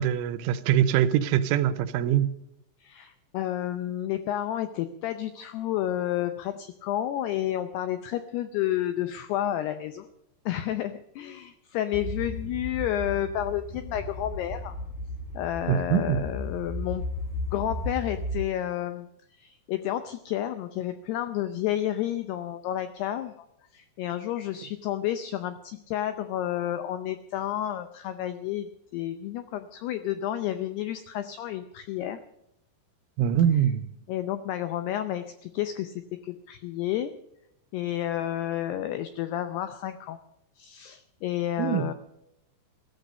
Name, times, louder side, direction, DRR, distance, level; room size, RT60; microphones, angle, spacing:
voice 1, 0.0-2.4 15.7-16.2 33.2-33.9 41.6-41.9, right 10 dB, 85° right, 3.3 m, -23 dB
voice 2, 2.8-10.1 10.5-14.8 15.3-17.0 17.5-23.3 23.7-32.2 33.5-33.6 34.1-37.1 37.7-40.2 40.6-41.9, left 12 dB, 85° left, 2.3 m, -31 dB
sound 1, 11.9-18.4, left 1 dB, 50° left, 5.3 m, -35 dB
15.0 x 14.5 x 5.3 m
omnidirectional pair, 5.5 m